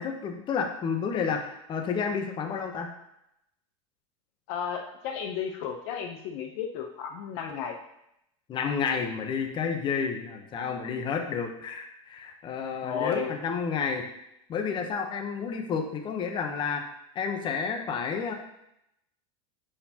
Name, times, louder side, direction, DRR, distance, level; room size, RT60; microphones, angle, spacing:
voice 1, 0.0-2.9 8.5-14.1 14.5-16.8 17.1-18.3, left 6 dB, 30° left, 4 dB, 0.9 m, -30 dB
voice 2, 4.5-7.8 12.8-13.3, left 7 dB, 55° left, 4 dB, 0.8 m, -33 dB
9.9 x 4.5 x 2.9 m, 0.81 s
supercardioid pair, 130°, 16 cm